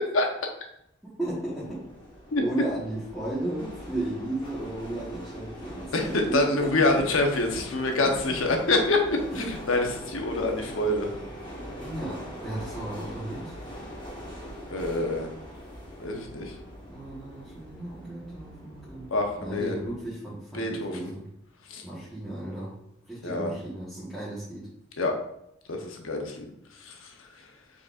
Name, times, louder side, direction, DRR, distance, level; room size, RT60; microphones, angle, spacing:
sound 1, 1.2-20.0, equal, 25° left, 1.2 m, -42 dB
voice 1, 1.2-1.8 2.4-5.9 6.3-6.7 8.0-8.1 11.8-13.7 16.9-19.1 19.4-21.2 21.8-22.7 23.0-24.7, right 1 dB, ahead, -11 dB, 1.3 m, -34 dB
voice 2, 5.9-11.2 14.7-15.3 16.0-16.6 19.1-19.7 20.5-21.1 21.7-21.8 23.2-23.6 25.0-25.2 25.7-27.5, left 2 dB, 90° left, 3 dB, 0.8 m, -26 dB
5.0 x 4.0 x 2.4 m, 0.78 s
head